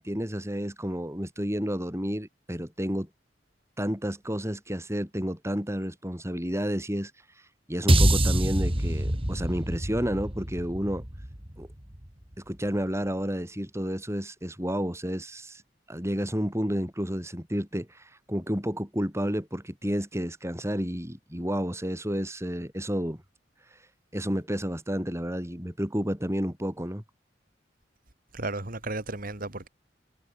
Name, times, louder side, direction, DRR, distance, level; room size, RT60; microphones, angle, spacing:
voice 1, 0.0-3.1 3.8-7.1 7.7-11.0 11.6-11.7 12.4-15.6 15.9-23.2 24.1-27.0, equal, 15° right, 7.8 m, -31 dB
sound 1, 7.9-12.2, right 1 dB, 30° right, 3.7 m, -25 dB
voice 2, 28.3-29.7, right 2 dB, 50° right, 3.6 m, -34 dB
head